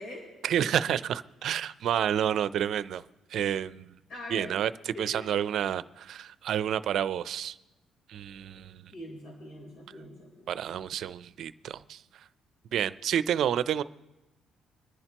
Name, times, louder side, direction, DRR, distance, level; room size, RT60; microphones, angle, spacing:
voice 1, 0.4-3.0 3.3-3.9 4.3-7.6 8.1-8.9 10.5-12.0 12.7-13.8, right 9 dB, 70° right, 15 dB, 0.5 m, -29 dB
voice 2, 4.1-4.5 4.9-5.3 8.9-10.9, left 1 dB, 70° left, -1 dB, 4.1 m, -43 dB
25.0 x 10.5 x 3.0 m, 1.1 s
supercardioid pair, 65°, 0 cm